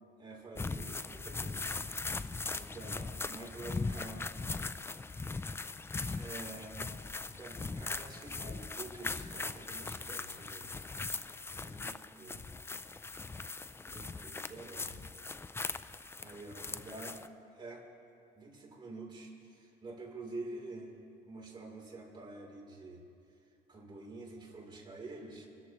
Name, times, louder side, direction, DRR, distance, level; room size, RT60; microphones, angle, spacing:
voice 1, 0.2-1.8 2.5-4.2 6.0-10.7 11.6-12.4 13.9-15.0 16.2-17.2 17.5-17.8 18.3-20.9 21.2-23.0 23.7-25.5, right 2 dB, 30° right, -2 dB, 3.6 m, -48 dB
sound 1, 0.6-17.3, left 3 dB, 15° left, 0.4 m, -40 dB
27.0 x 13.5 x 3.1 m, 2.5 s
cardioid pair, 110°, 17 cm